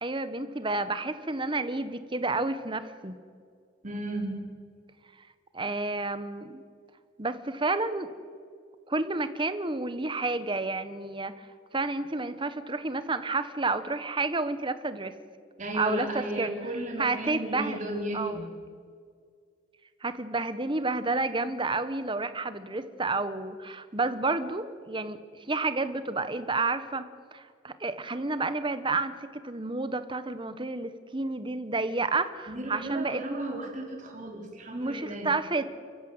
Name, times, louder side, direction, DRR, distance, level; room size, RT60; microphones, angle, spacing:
voice 1, 0.0-3.1 5.5-6.6 7.2-8.1 8.9-11.5 11.7-15.1 15.7-16.5 17.0-17.8 18.1-18.4 20.0-27.0 27.3-29.1 29.4-33.2 34.7-35.6, right 3 dB, 25° right, 12 dB, 1.2 m, -30 dB
voice 2, 3.8-4.4 15.6-18.5 32.5-35.3, right 1 dB, 40° right, 1 dB, 4.1 m, -34 dB
29.5 x 15.0 x 8.0 m, 2.2 s
head